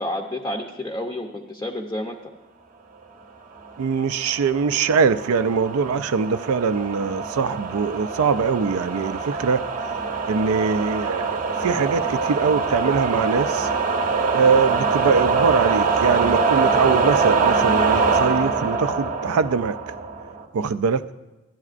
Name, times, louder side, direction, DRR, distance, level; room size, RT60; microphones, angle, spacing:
voice 1, 0.0-2.2, left 1 dB, 15° left, 1 dB, 0.6 m, -30 dB
voice 2, 3.8-9.6 10.2-13.7 14.3-19.8 20.5-21.0, right 5 dB, 70° right, 12 dB, 0.4 m, -22 dB
sound 1, 4.0-20.4, right 4 dB, 40° right, 0.8 m, -24 dB
15.5 x 10.5 x 2.5 m, 1.1 s
head